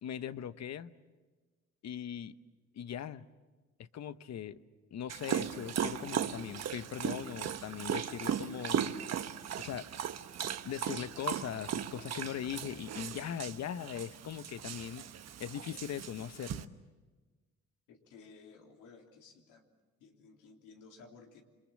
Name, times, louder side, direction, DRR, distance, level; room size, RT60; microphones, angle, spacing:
voice 1, 0.0-0.9 1.8-2.4 2.7-3.3 3.8-4.6 4.9-9.0 9.6-9.9 10.6-15.1 15.4-16.7, left 9 dB, 60° left, 13 dB, 1.0 m, -40 dB
Dog, 5.1-16.6, right 9 dB, 60° right, 1.2 m, -37 dB
voice 2, 17.9-19.7 20.0-21.4, left 4 dB, 90° left, 2 dB, 3.4 m, -56 dB
28.5 x 23.5 x 7.5 m, 1.3 s
cardioid pair, 90°, 30 cm